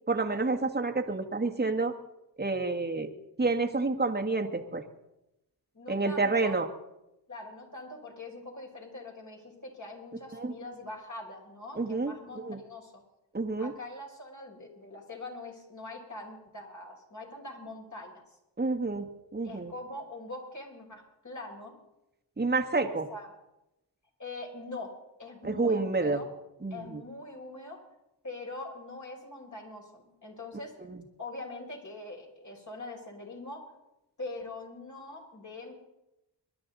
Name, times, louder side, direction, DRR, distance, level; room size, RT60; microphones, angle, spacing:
voice 1, 0.1-1.9 2.4-3.1 3.4-4.8 5.9-6.7 10.3-10.5 11.8-12.6 13.3-13.7 18.6-19.7 22.4-23.1 25.4-26.2 26.6-27.0 30.9-31.0, right 3 dB, 20° right, 4 dB, 1.7 m, -29 dB
voice 2, 5.7-6.5 7.3-13.0 13.6-18.2 19.4-21.7 22.8-23.3 24.2-24.9 25.2-26.3 26.7-27.8 28.2-30.7 31.2-33.7 34.2-35.9, left 2 dB, 40° left, 0 dB, 5.4 m, -43 dB
24.5 x 11.5 x 4.1 m, 0.92 s
cardioid pair, 55°, 44 cm